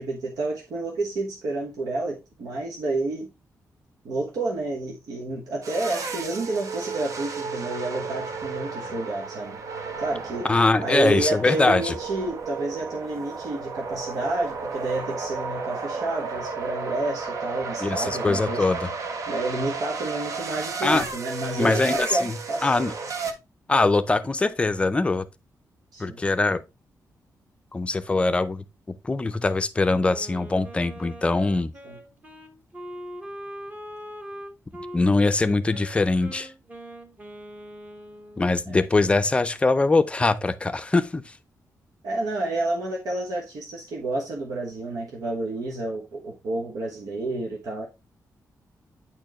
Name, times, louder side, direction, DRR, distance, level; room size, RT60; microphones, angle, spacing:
voice 1, 0.0-3.3 4.0-9.6 10.0-10.5 10.8-18.6 19.3-22.8 25.9-26.2 31.8-32.0 38.7-38.8 42.0-47.9, right 2 dB, 80° right, 1.2 m, -30 dB
sound 1, 5.6-23.3, right 4 dB, 60° right, 0.9 m, -33 dB
voice 2, 10.4-11.9 17.8-18.9 20.8-21.0 21.6-22.3 22.6-22.9 23.7-25.3 26.0-26.6 27.7-31.7 34.9-36.5 38.4-41.2, left 3 dB, 20° left, 0.5 m, -22 dB
Wind instrument woodwind instrument, 30.1-38.5, equal, 25° right, 1.1 m, -41 dB
8.8 x 4.4 x 2.9 m
wide cardioid pair, 160°, 6 cm